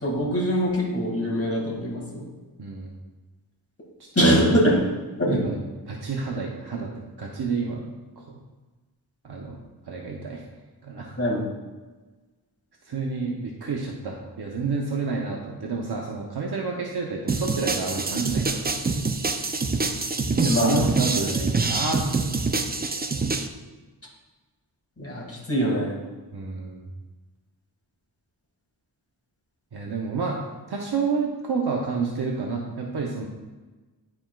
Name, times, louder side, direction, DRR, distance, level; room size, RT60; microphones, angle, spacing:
voice 1, 0.0-2.3 4.2-4.8 5.2-5.4 11.2-11.5 20.5-21.0 25.0-26.0, equal, 35° left, -4 dB, 2.1 m, -23 dB
voice 2, 2.6-2.9 4.2-4.6 5.3-5.6 5.9-6.9 7.2-7.9 8.2-8.4 9.2-9.6 9.9-10.4 10.8-11.1 12.8-18.8 20.4-22.0 26.3-26.9 29.7-30.4 30.7-33.3, right 4 dB, 70° right, -1 dB, 0.9 m, -29 dB
sound 1, 17.3-23.5, right 3 dB, 25° right, 0.4 m, -26 dB
11.0 x 4.4 x 2.4 m, 1.2 s
wide cardioid pair, 90°, 40 cm